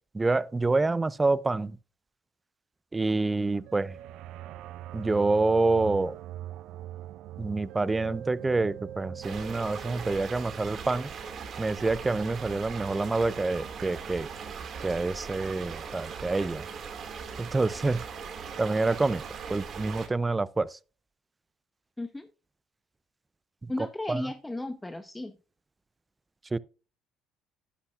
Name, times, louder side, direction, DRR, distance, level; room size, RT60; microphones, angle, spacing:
voice 1, 0.1-1.8 2.9-4.0 4.9-6.2 7.4-11.1 11.6-14.3 14.8-16.7 17.4-18.0 18.6-19.2 19.5-20.8 23.6-23.7 24.1-24.3 26.5-26.6, right 3 dB, 20° right, 0.5 m, -27 dB
sound 1, 3.6-10.3, right 12 dB, 70° right, 0.5 m, -42 dB
sound 2, 9.2-20.1, right 6 dB, 50° right, 2.2 m, -39 dB
voice 2, 22.0-22.3 23.7-25.4, left 2 dB, 10° left, 0.9 m, -35 dB
11.5 x 9.9 x 2.4 m
supercardioid pair, 80°, 0 cm